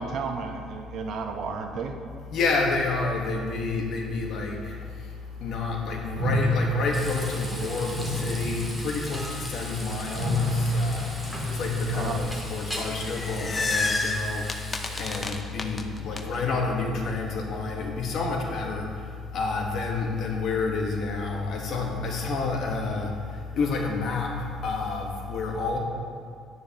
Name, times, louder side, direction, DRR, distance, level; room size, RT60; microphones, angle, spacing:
voice 1, 0.0-2.0 11.9-12.2, right 5 dB, 60° right, 4 dB, 0.9 m, -32 dB
voice 2, 2.3-5.1 5.4-25.8, left 3 dB, 60° left, 1 dB, 1.4 m, -29 dB
sound 1, 6.1-12.4, left 1 dB, 85° right, 1.4 m, -29 dB
Frying (food), 6.9-15.3, equal, 5° left, 1.8 m, -39 dB
sound 2, 12.9-16.2, left 3 dB, 25° left, 0.6 m, -30 dB
9.5 x 9.3 x 3.0 m, 2.3 s
cardioid pair, 105°, 0 cm